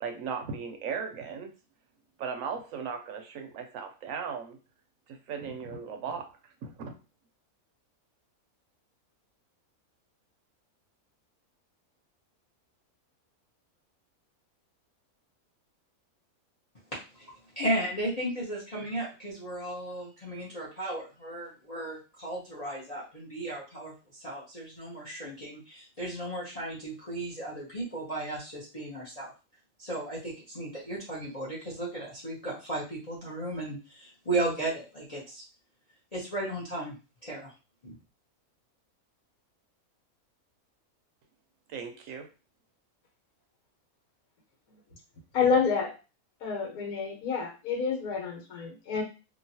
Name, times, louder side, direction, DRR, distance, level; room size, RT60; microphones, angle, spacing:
voice 1, 0.0-1.5 2.2-4.6 5.1-6.3 6.6-6.9 41.7-42.3, right 6 dB, 70° right, 6 dB, 0.9 m, -37 dB
voice 2, 16.9-29.3 29.8-35.4 36.1-36.9 37.2-37.5 37.8-37.9, right 1 dB, 35° left, -6 dB, 0.8 m, -35 dB
voice 3, 45.3-45.9 46.4-49.0, left 5 dB, 80° left, 1 dB, 1.4 m, -28 dB
2.9 x 2.4 x 2.7 m, 0.31 s
omnidirectional pair, 1.6 m